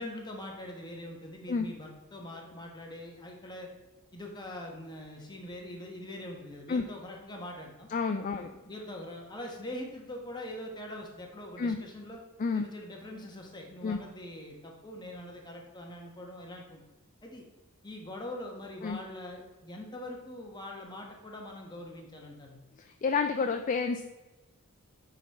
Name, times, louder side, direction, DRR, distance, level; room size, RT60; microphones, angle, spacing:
voice 1, 0.0-3.7 4.1-7.9 8.3-12.2 12.5-16.8 17.2-17.4 17.8-22.6, left 1 dB, 20° left, 0 dB, 1.2 m, -43 dB
voice 2, 7.9-8.5 11.6-11.8 12.4-12.6 13.8-14.0 18.8-19.0 22.8-24.0, left 5 dB, 35° left, 7 dB, 0.3 m, -29 dB
9.4 x 4.1 x 4.2 m, 1.2 s
head